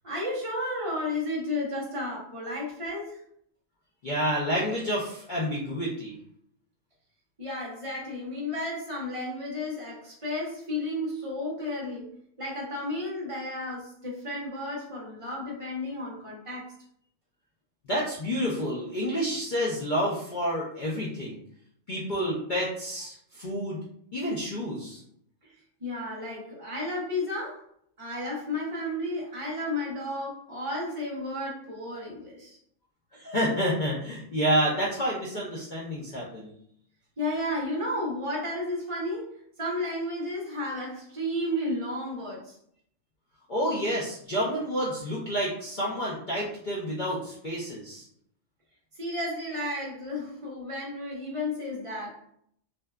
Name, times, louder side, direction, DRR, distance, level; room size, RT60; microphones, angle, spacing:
voice 1, 0.0-3.2 7.4-12.1 12.4-16.7 25.8-27.6 28.0-32.6 37.2-39.3 39.6-42.6 48.9-52.2, left 1 dB, 35° right, -4 dB, 0.5 m, -33 dB
voice 2, 4.0-6.2 17.9-21.4 21.9-23.8 24.1-25.0 33.1-36.5 43.5-48.0, equal, 65° left, -5 dB, 0.4 m, -29 dB
2.6 x 2.2 x 2.2 m, 0.68 s
omnidirectional pair, 1.5 m